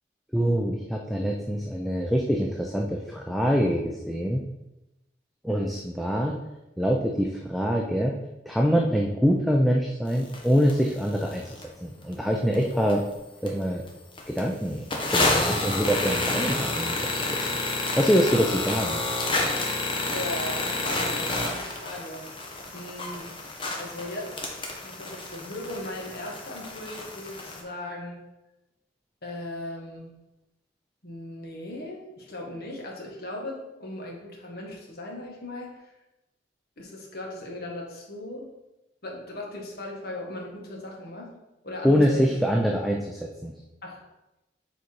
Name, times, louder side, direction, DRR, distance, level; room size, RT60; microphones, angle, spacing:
voice 1, 0.3-4.4 5.4-6.3 6.8-8.2 8.5-13.0 13.4-13.8 14.3-17.6 18.0-19.0 41.8-43.5, equal, ahead, -1 dB, 0.5 m, -25 dB
sound 1, 10.3-10.4 10.7-10.8 11.2-11.6 12.1-12.2 12.5-13.1 13.5-13.6 13.9-14.0 14.2-14.4 14.9-27.6, left 2 dB, 30° left, 1.1 m, -29 dB
voice 2, 20.1-22.3 22.7-23.3 23.8-28.2 29.2-30.1 31.0-35.9 36.8-38.4 39.0-41.3 41.6-42.4 43.8-44.0, left 1 dB, 55° left, -1 dB, 1.7 m, -38 dB
7.4 x 4.1 x 4.6 m, 0.96 s
head